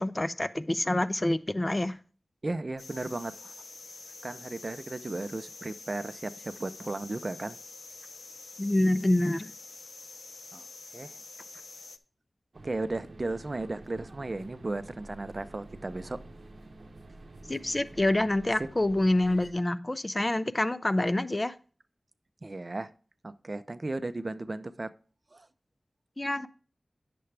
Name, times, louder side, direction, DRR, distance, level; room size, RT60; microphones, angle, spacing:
voice 1, 0.0-2.0 8.6-9.5 17.5-21.5 26.2-26.5, left 1 dB, 25° left, 0.5 m, -27 dB
voice 2, 2.4-3.5 4.2-7.6 10.5-10.6 10.9-11.2 12.6-16.2 18.6-18.7 22.4-22.9 23.2-24.9 25.3-25.5, right 2 dB, 40° right, 0.5 m, -35 dB
sound 1, 2.8-12.0, left 3 dB, 80° left, 0.6 m, -47 dB
sound 2, 12.5-19.5, right 2 dB, 70° right, 0.8 m, -49 dB
9.9 x 6.8 x 3.3 m
wide cardioid pair, 85°, 0 cm